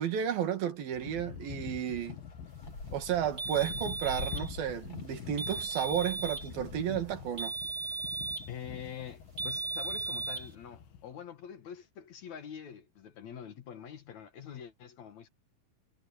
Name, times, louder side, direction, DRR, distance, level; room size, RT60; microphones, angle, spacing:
voice 1, 0.0-2.2 2.9-7.5, right 9 dB, 85° right, 4.0 m, -32 dB
sound 1, 0.9-11.1, left 8 dB, 80° left, 3.6 m, -46 dB
sound 2, 2.1-7.5, left 3 dB, 40° left, 5.7 m, -47 dB
sound 3, 3.4-4.5 5.4-6.5 7.4-8.5 9.4-10.5, right 3 dB, 35° right, 1.4 m, -36 dB
voice 2, 8.5-15.3, left 8 dB, 60° left, 2.6 m, -45 dB
omnidirectional pair, 4.1 m